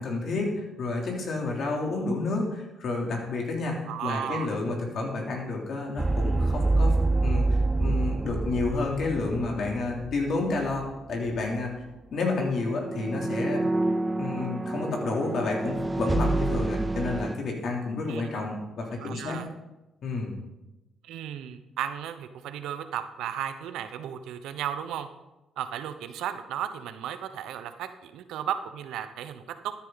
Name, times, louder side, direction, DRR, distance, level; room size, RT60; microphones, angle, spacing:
voice 1, 0.0-11.7 12.1-13.6 14.2-19.4 20.0-20.3, left 3 dB, 60° left, 0 dB, 3.4 m, -30 dB
voice 2, 3.9-4.5 18.1-18.5 19.0-19.5 21.0-25.1 25.6-29.7, right 10 dB, 85° right, 10 dB, 0.9 m, -34 dB
sound 1, 6.0-10.8 11.1-11.3 12.8-17.4, right 2 dB, 20° right, 0.4 m, -27 dB
13.0 x 10.0 x 4.1 m, 0.99 s
cardioid pair, 90°, 0 cm